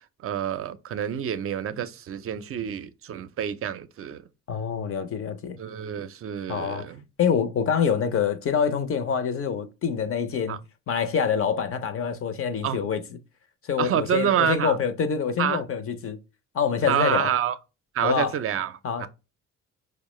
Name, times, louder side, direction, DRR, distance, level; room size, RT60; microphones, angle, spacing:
voice 1, 0.2-4.2 5.6-7.0 10.5-10.6 12.6-12.8 13.8-14.8 15.4-15.6 16.9-17.6 17.9-18.7 19.0-19.1, right 9 dB, 50° right, 0.4 m, -27 dB
voice 2, 4.5-5.6 6.5-6.9 7.2-10.6 10.9-13.2 13.6-16.2 16.5-17.3 18.0-18.3 18.8-19.1, left 7 dB, 45° left, 0.6 m, -26 dB
4.6 x 2.1 x 3.0 m
cardioid pair, 90°, 30 cm